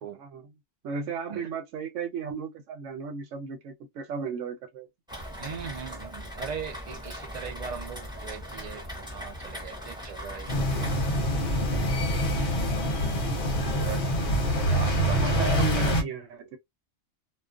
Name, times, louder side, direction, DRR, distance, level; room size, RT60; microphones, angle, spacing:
voice 1, 0.0-0.5 0.8-4.9 15.2-16.6, right 5 dB, 85° right, 0.9 m, -35 dB
Rain, 5.1-11.2, equal, 5° right, 0.6 m, -39 dB
voice 2, 5.4-11.8 12.6-13.2 13.8-14.1 14.5-15.9, right 6 dB, 70° right, 0.4 m, -40 dB
sound 1, 10.5-16.0, equal, 50° left, 0.8 m, -25 dB
2.3 x 2.2 x 2.4 m
omnidirectional pair, 1.2 m